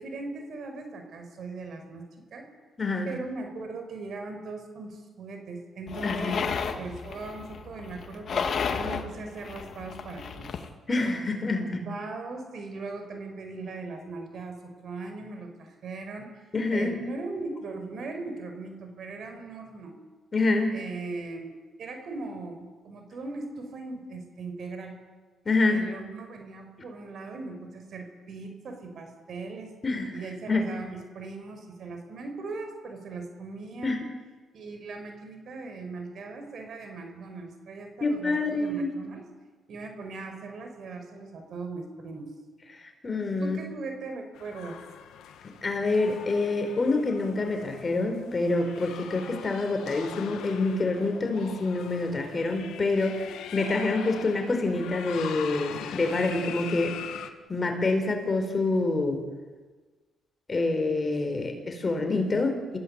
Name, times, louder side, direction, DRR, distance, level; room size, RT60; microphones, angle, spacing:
voice 1, 0.0-2.0 2.3-2.5 3.0-6.5 6.8-10.6 11.8-16.4 16.7-20.0 20.7-21.5 21.8-25.0 25.7-29.7 30.1-34.1 34.5-39.3 39.7-42.3 43.4-44.8, right 3 dB, 60° right, 5 dB, 5.0 m, -39 dB
voice 2, 2.8-3.1 6.0-6.4 10.9-11.8 16.5-16.9 20.3-20.7 25.4-25.8 29.8-30.1 30.5-30.6 33.8-34.0 38.0-38.9 42.8-43.6 45.6-57.0 57.5-59.2 60.5-62.8, left 3 dB, 30° left, 5 dB, 4.5 m, -27 dB
sound 1, 5.9-10.7, left 6 dB, 55° left, 2.1 m, -33 dB
sound 2, 44.3-57.3, left 9 dB, 80° left, 1.8 m, -42 dB
27.0 x 16.0 x 8.2 m, 1.3 s
cardioid pair, 90°, 0 cm